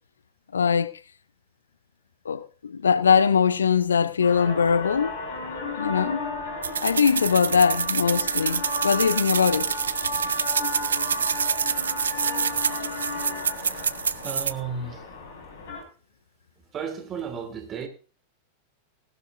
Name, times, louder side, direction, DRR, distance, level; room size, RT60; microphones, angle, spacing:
voice 1, 0.5-0.9 2.3-5.1 5.8-6.2 6.8-9.7, left 6 dB, 70° left, 0.6 m, -21 dB
sound 1, 4.2-15.8, left 2 dB, 50° left, 6.3 m, -34 dB
sound 2, 6.6-14.5, right 6 dB, 70° right, 0.6 m, -27 dB
voice 2, 13.6-15.1 16.7-17.9, right 6 dB, 30° right, 2.9 m, -34 dB
18.5 x 12.0 x 2.6 m
figure-of-eight pair, 90°, 0 cm